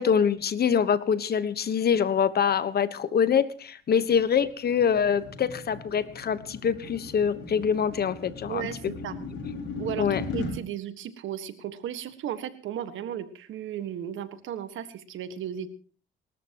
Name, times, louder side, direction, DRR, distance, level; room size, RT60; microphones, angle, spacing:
voice 1, 0.0-8.9 10.0-10.2, left 7 dB, 50° left, 14 dB, 1.2 m, -25 dB
sound 1, 4.1-10.5, left 3 dB, 80° left, 6.4 m, -38 dB
voice 2, 8.5-9.2 9.8-10.1 10.3-15.7, right 10 dB, 80° right, 11 dB, 1.6 m, -35 dB
28.5 x 13.5 x 3.0 m, 0.40 s
cardioid pair, 90°, 20 cm